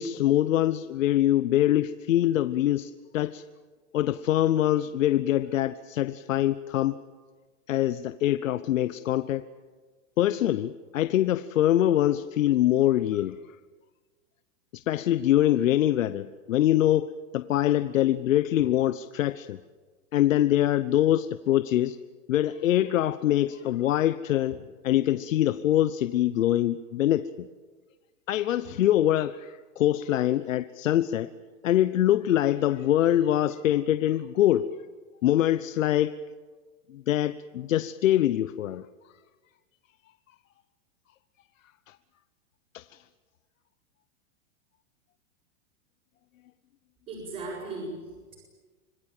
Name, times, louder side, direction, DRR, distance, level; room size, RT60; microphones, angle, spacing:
voice 1, 0.0-3.4 3.9-7.0 7.7-9.4 10.2-13.6 14.7-19.6 20.1-22.0 22.3-27.5 28.3-31.3 31.6-34.7 35.2-36.2 36.9-38.9 41.9-42.0 42.7-43.0, left 13 dB, 75° left, 13 dB, 1.0 m, -24 dB
voice 2, 47.1-48.3, right 2 dB, 20° right, -4 dB, 6.6 m, -37 dB
26.0 x 21.0 x 9.0 m, 1.4 s
supercardioid pair, 175°, 40 cm